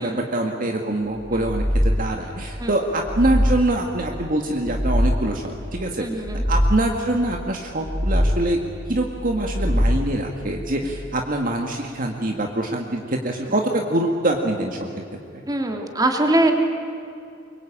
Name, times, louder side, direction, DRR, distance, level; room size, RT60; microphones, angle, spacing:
voice 1, 0.0-6.1 6.5-8.6 8.9-14.8, right 1 dB, 45° right, 2 dB, 1.8 m, -24 dB
sound 1, 1.3-2.4 2.8-4.0 4.4-5.5 6.0-7.1 7.6-8.7 9.3-10.4, equal, ahead, 3.6 m, -23 dB
voice 2, 6.0-6.4 15.5-16.5, right 1 dB, 20° right, 3 dB, 2.8 m, -22 dB
24.0 x 23.0 x 8.8 m, 2.5 s
head